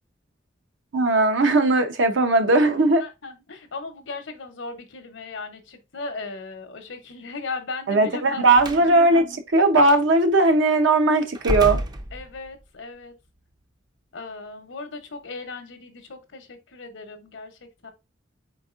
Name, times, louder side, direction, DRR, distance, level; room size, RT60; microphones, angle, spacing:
voice 1, 0.9-3.0 7.9-11.8, right 2 dB, 75° right, 0.7 m, -18 dB
voice 2, 3.0-8.7 12.1-13.1 14.1-17.9, left 3 dB, 80° left, 0.8 m, -37 dB
Slam, 8.6-8.9 9.8-10.0 11.3-12.6, right 1 dB, 20° right, 0.4 m, -29 dB
4.0 x 3.6 x 2.4 m
head